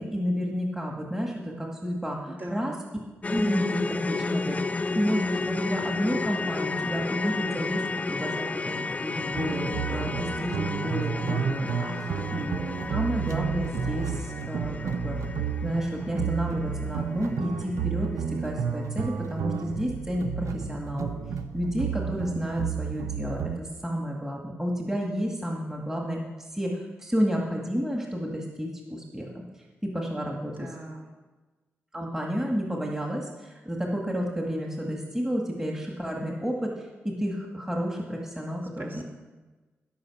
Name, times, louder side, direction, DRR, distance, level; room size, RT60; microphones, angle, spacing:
voice 1, 0.0-2.7 3.3-4.6 4.9-11.7 12.3-12.6 12.9-15.2 15.6-21.1 21.5-26.2 26.5-29.3 29.8-30.7 31.9-39.0, equal, 10° right, -1 dB, 2.1 m, -31 dB
voice 2, 2.3-2.8 11.8-12.3 30.4-31.1 38.8-39.0, right 1 dB, 40° right, 0 dB, 2.8 m, -39 dB
sound 1, 3.2-17.4 17.7-17.9 18.3-18.4, left 3 dB, 30° left, 0.4 m, -32 dB
sound 2, 9.3-23.6, right 7 dB, 80° right, 0.7 m, -31 dB
16.5 x 5.7 x 7.3 m, 1.2 s
cardioid pair, 75°, 5 cm